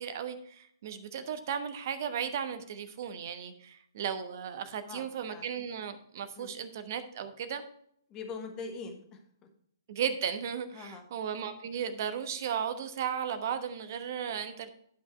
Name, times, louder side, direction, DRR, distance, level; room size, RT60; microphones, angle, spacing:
voice 1, 0.0-7.6 9.9-14.7, right 8 dB, 45° right, 9 dB, 1.1 m, -35 dB
voice 2, 4.9-5.5 6.3-6.6 8.1-9.2 10.7-11.0, left 4 dB, 25° left, 4 dB, 1.6 m, -42 dB
11.5 x 5.5 x 4.5 m, 0.67 s
figure-of-eight pair, 125°, 2 cm